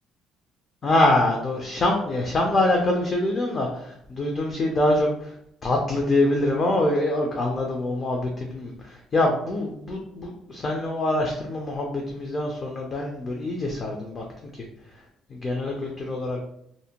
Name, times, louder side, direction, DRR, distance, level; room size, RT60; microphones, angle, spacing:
voice 1, 0.8-5.4 5.6-14.3 14.5-15.0 15.3-16.4, left 1 dB, 30° left, 0 dB, 0.3 m, -25 dB
2.5 x 2.1 x 2.8 m, 0.74 s
cardioid pair, 170°, 0 cm